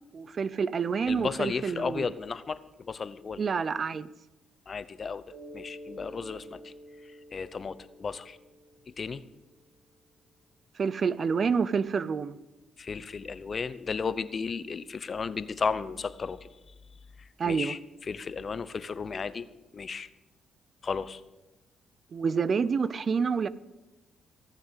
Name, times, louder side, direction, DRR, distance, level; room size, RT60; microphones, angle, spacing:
voice 1, 0.1-2.1 3.4-4.1 10.7-12.4 17.4-17.7 22.1-23.5, right 5 dB, 45° right, 18 dB, 0.6 m, -28 dB
voice 2, 1.1-3.4 4.7-5.2 5.5-6.7 7.0-8.4 9.0-9.2 12.8-16.7 17.2-17.8 18.1-19.5 19.7-20.1 20.8-21.2, left 5 dB, 40° left, 15 dB, 0.8 m, -34 dB
Mallet percussion, 5.3-9.7, equal, 80° right, 4.9 m, -49 dB
15.5 x 7.3 x 8.3 m, 1.0 s
cardioid pair, 90°, 0 cm